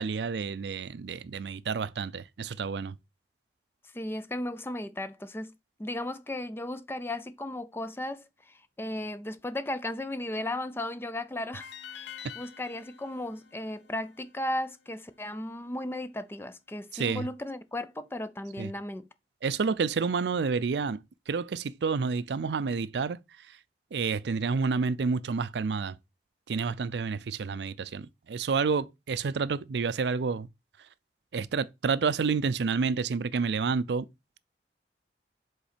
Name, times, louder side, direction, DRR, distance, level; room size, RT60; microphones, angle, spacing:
voice 1, 0.0-3.0 16.9-17.3 18.6-18.7 19.4-21.0 21.3-23.2 23.5-23.6 23.9-26.0 26.5-30.5 31.3-34.1, right 5 dB, 75° right, 0.4 m, -29 dB
voice 2, 3.9-5.5 5.8-19.1, left 1 dB, 15° left, 0.4 m, -35 dB
sound 1, 11.6-14.8, left 9 dB, 85° left, 0.7 m, -47 dB
5.2 x 3.8 x 5.0 m
head